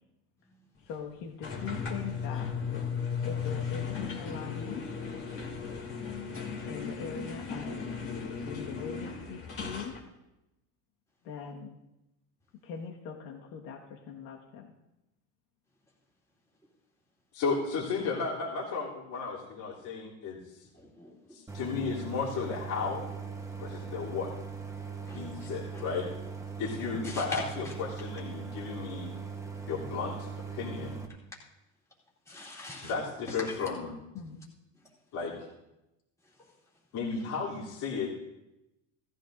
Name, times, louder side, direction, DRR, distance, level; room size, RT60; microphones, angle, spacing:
voice 1, 0.8-2.5 3.2-4.8 6.6-7.8 8.4-9.9 11.2-11.8 12.6-14.7 34.1-34.5, left 6 dB, 70° left, 0 dB, 1.7 m, -41 dB
sound 1, 1.4-10.0, left 6 dB, 35° left, 2.5 m, -36 dB
voice 2, 17.3-20.4 21.3-23.0 23.6-24.3 25.1-26.1 26.6-29.1 29.6-31.0 32.8-33.9 35.1-35.5 36.9-38.1, left 5 dB, 50° left, -5 dB, 3.2 m, -34 dB
voice 3, 20.7-21.4 25.1-25.2 25.7-25.8 27.0-27.4 32.3-32.9 33.3-33.7, left 2 dB, 5° left, -5 dB, 2.7 m, -41 dB
Idling, 21.5-31.1, right 6 dB, 10° right, 1.1 m, -40 dB
17.0 x 14.0 x 2.6 m, 0.94 s
supercardioid pair, 135°, 38 cm